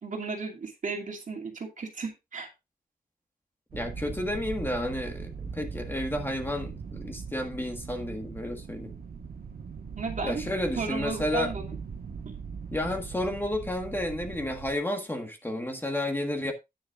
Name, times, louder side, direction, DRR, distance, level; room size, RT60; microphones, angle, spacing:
voice 1, 0.0-2.5 10.0-10.4 10.8-11.8 12.2-12.4, right 4 dB, 55° right, 2.6 m, -34 dB
voice 2, 3.7-8.9 10.2-11.5 12.7-16.5, left 1 dB, 15° left, 1.6 m, -31 dB
sound 1, 3.7-14.8, right 5 dB, 80° right, 1.5 m, -40 dB
10.5 x 9.9 x 2.5 m
wide cardioid pair, 180°, 16 cm